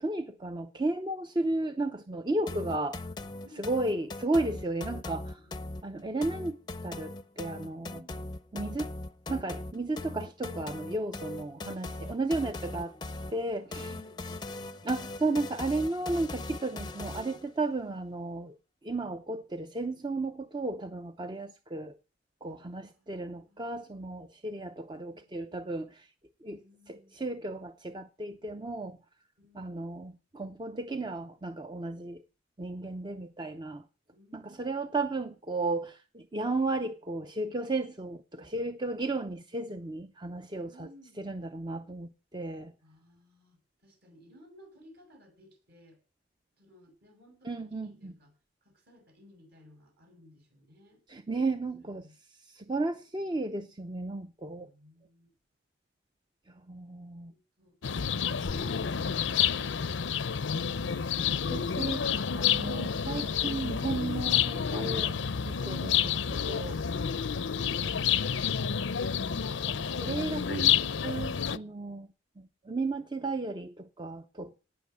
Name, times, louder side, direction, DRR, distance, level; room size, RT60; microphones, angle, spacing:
voice 1, 0.0-2.9 3.6-5.4 5.8-6.6 6.8-8.0 8.5-8.9 9.3-12.9 13.3-13.9 14.8-18.5 18.8-21.9 22.4-26.1 26.4-26.6 26.9-29.0 29.5-32.2 32.6-33.8 34.3-40.9 41.2-42.7 47.5-48.1 51.1-52.1 52.5-54.7 56.7-57.3 59.2-59.4 61.2-62.0 62.3-65.1 65.5-66.8 69.7-70.7 71.0-72.1 72.4-74.5, right 2 dB, 25° right, 0.7 m, -34 dB
sound 1, 2.5-17.5, left 2 dB, 25° left, 0.6 m, -40 dB
voice 2, 3.4-4.1 5.4-5.7 7.8-8.4 12.6-13.1 13.5-15.0 22.4-23.7 24.9-25.6 26.5-27.2 29.4-30.0 34.1-35.1 38.8-39.4 39.6-39.9 40.5-41.2 42.8-46.0 46.6-48.3 48.6-51.0 51.8-52.2 54.6-55.3 57.2-57.8, left 1 dB, 55° right, 7.0 m, -58 dB
sound 2, 57.8-71.6, left 8 dB, 75° left, 0.6 m, -29 dB
18.0 x 6.2 x 8.1 m
head